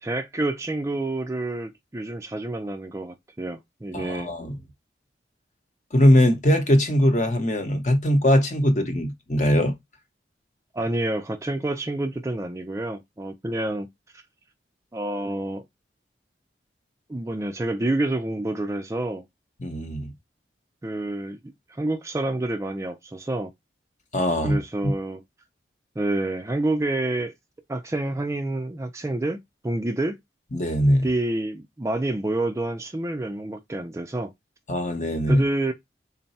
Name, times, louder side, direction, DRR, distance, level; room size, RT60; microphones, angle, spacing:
voice 1, 0.0-4.3 10.7-13.9 14.9-15.6 17.1-19.3 20.8-21.4 21.7-23.5 24.4-25.2 26.0-27.3 27.7-29.4 29.6-30.2 31.0-34.3 35.3-35.7, right 2 dB, 15° right, 0.4 m, -28 dB
voice 2, 3.9-4.5 5.9-9.8 19.6-20.1 24.1-24.9 30.5-31.1 34.7-35.4, equal, 40° left, 0.8 m, -21 dB
3.9 x 2.2 x 4.0 m
head